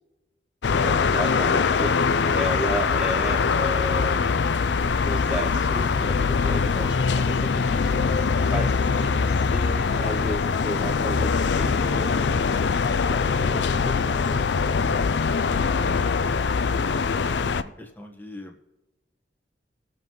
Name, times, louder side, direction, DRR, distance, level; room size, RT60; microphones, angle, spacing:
sound 1, 0.6-17.6, left 5 dB, 70° left, 0.5 m, -23 dB
voice 1, 0.7-4.4 4.8-12.7 13.1-14.4, equal, 10° right, -2 dB, 0.7 m, -34 dB
voice 2, 17.2-18.7, left 2 dB, 10° left, 1 dB, 1.4 m, -44 dB
22.0 x 7.4 x 3.1 m, 1.1 s
head